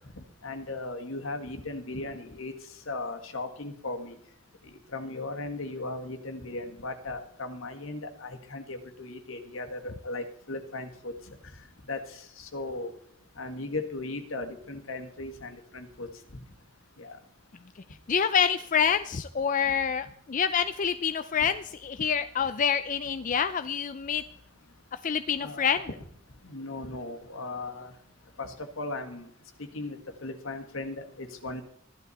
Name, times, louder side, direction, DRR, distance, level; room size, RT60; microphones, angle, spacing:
voice 1, 0.1-2.5 2.9-4.1 4.6-11.4 11.9-12.9 13.4-16.1 17.0-17.2 21.4-21.5 25.4-25.8 26.4-27.9 28.4-29.3 29.7-31.6, left 2 dB, 70° left, 6 dB, 1.7 m, -37 dB
voice 2, 18.1-24.2 25.0-25.9, left 7 dB, 35° left, 11 dB, 0.4 m, -27 dB
14.5 x 12.0 x 4.2 m, 0.66 s
head